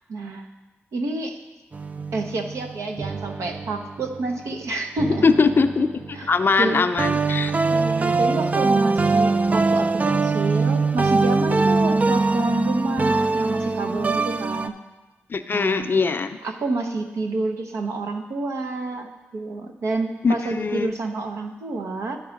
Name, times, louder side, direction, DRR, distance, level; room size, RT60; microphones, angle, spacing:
voice 1, 0.1-0.5 0.9-1.4 2.1-5.2 6.1-6.3 6.6-6.9 7.7-14.8 15.5-16.0 16.4-22.2, right 2 dB, 85° right, 4 dB, 0.8 m, -29 dB
sound 1, 1.7-4.3 5.0-6.5 7.0-14.7, right 3 dB, 30° right, 0.4 m, -22 dB
voice 2, 5.1-7.5 15.3-16.4 20.2-20.9, left 4 dB, 50° left, 10 dB, 0.5 m, -21 dB
9.7 x 4.6 x 5.1 m, 1.2 s
cardioid pair, 70°, 5 cm